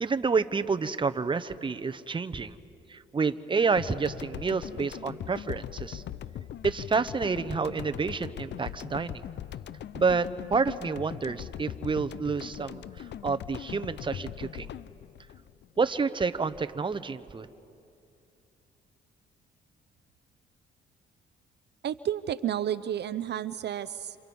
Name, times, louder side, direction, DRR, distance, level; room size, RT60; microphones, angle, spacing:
voice 1, 0.0-2.6 2.9-6.0 6.6-9.2 9.9-12.8 13.2-14.7 15.8-17.5, right 4 dB, 25° right, 12 dB, 0.9 m, -29 dB
sound 1, 3.8-16.2, left 10 dB, 60° left, 0.6 m, -40 dB
voice 2, 21.8-24.2, right 10 dB, 60° right, 13 dB, 0.6 m, -31 dB
28.0 x 27.0 x 5.4 m, 2.7 s
cardioid pair, 90°, 20 cm